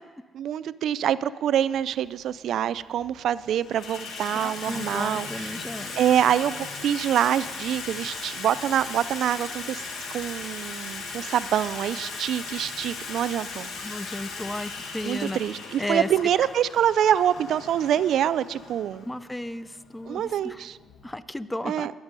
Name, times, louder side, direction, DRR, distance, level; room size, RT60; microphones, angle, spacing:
voice 1, 0.4-5.5 6.0-13.7 15.0-19.0 20.1-20.8 21.6-21.9, right 10 dB, 75° right, 17 dB, 0.3 m, -25 dB
Water tap faucet / Sink (filling or washing), 1.7-1.8 2.7-3.1 3.4-21.0, left 4 dB, 75° left, 2.0 m, -38 dB
voice 2, 4.3-6.0 13.8-15.4 15.8-16.1 19.0-20.6 21.0-21.9, left 1 dB, 10° left, 16 dB, 0.5 m, -34 dB
13.5 x 11.0 x 5.3 m, 1.4 s
cardioid pair, 90°, 0 cm